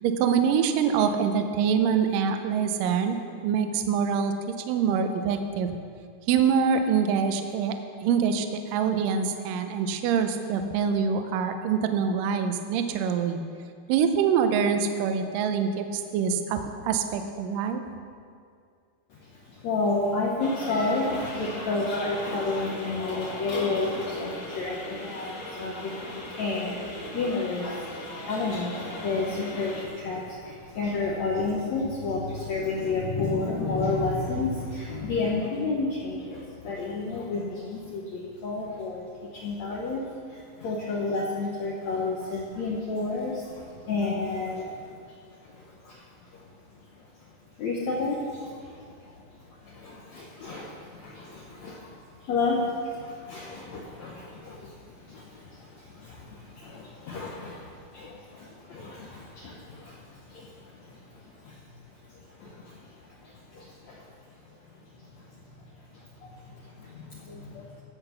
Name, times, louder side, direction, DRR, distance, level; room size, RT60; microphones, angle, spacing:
voice 1, 0.0-3.2 3.4-4.3 4.7-5.7 6.3-13.4 13.9-17.8, right 6 dB, 75° right, 7 dB, 2.2 m, -25 dB
voice 2, 19.1-39.1 39.3-46.5 46.8-47.1 47.6-49.2 49.5-61.6 62.1-64.1 64.5-64.6 64.9-65.2 65.9-67.8, left 3 dB, 65° left, -3 dB, 1.8 m, -31 dB
sound 1, 20.4-29.8, left 1 dB, 50° left, 1.4 m, -37 dB
15.0 x 5.9 x 6.8 m, 2.2 s
omnidirectional pair, 4.4 m